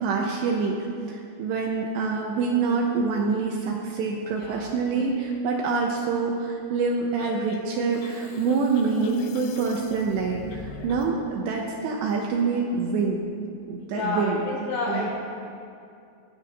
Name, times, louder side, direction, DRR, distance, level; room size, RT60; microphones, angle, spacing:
voice 1, 0.0-13.2 13.7-14.4 14.9-15.1, right 4 dB, 80° right, 0 dB, 2.7 m, -26 dB
voice 2, 4.3-4.7 8.9-9.3 13.8-15.1, left 2 dB, 65° left, -6 dB, 5.5 m, -30 dB
sound 1, 7.2-11.1, left 7 dB, 85° left, 2.5 m, -43 dB
22.5 x 10.0 x 2.6 m, 2.4 s
omnidirectional pair, 5.7 m